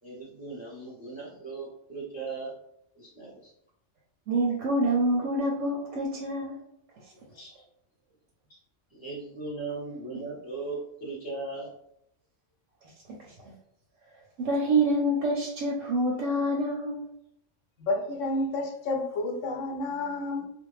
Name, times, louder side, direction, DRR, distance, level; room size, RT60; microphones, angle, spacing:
voice 1, 0.0-2.5 2.9-3.5 7.3-7.6 8.9-11.7, right 3 dB, 10° right, -8 dB, 0.6 m, -38 dB
voice 2, 4.3-6.5 14.4-17.0, right 1 dB, 85° right, -3 dB, 1.0 m, -26 dB
voice 3, 17.8-20.5, left 2 dB, 85° left, 2 dB, 1.0 m, -30 dB
2.5 x 2.1 x 3.1 m, 0.76 s
omnidirectional pair, 1.3 m